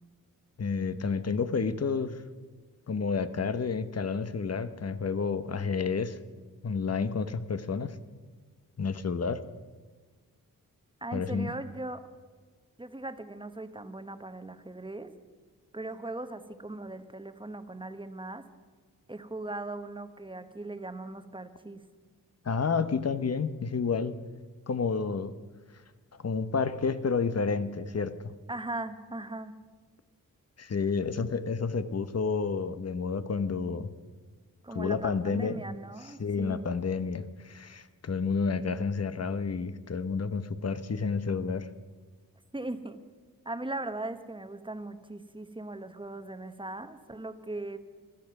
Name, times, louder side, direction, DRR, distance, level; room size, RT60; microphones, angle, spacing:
voice 1, 0.6-2.2 2.9-6.2 6.6-8.0 8.8-9.4 11.1-11.5 22.4-24.2 24.7-25.3 26.2-28.2 30.6-33.9 34.7-35.6 36.2-41.7, left 5 dB, 45° left, 12 dB, 1.0 m, -30 dB
voice 2, 11.0-12.0 12.8-15.1 15.7-18.4 19.1-21.8 28.5-29.5 34.6-36.7 42.5-43.0 43.4-47.8, right 2 dB, 15° right, 9 dB, 1.2 m, -39 dB
15.5 x 12.5 x 6.0 m, 1.5 s
cardioid pair, 65°, 35 cm